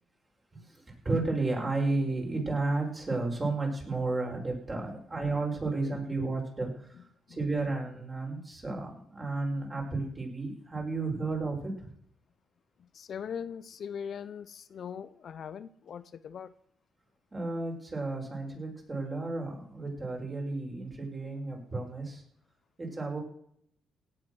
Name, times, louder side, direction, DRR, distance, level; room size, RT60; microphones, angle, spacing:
voice 1, 0.5-11.9 17.3-22.2 22.8-23.2, right 3 dB, 25° right, 5.8 m, -33 dB
voice 2, 12.8-16.5, left 7 dB, 60° left, 0.7 m, -41 dB
17.5 x 9.0 x 6.3 m
cardioid pair, 95°, 0 cm